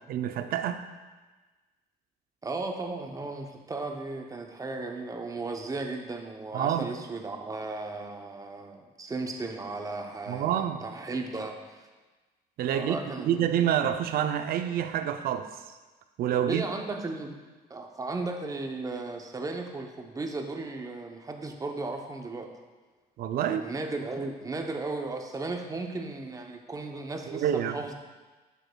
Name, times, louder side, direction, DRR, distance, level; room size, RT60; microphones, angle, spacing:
voice 1, 0.1-0.8 6.5-6.9 10.3-10.8 12.6-15.5 16.2-16.6 23.2-23.7 27.3-27.8, right 10 dB, 60° right, 9 dB, 0.5 m, -27 dB
voice 2, 2.4-11.9 12.7-13.5 16.4-17.4 17.7-22.5 23.4-27.9, right 3 dB, 20° right, 3 dB, 0.7 m, -35 dB
7.8 x 6.5 x 2.2 m, 1.3 s
cardioid pair, 110°, 17 cm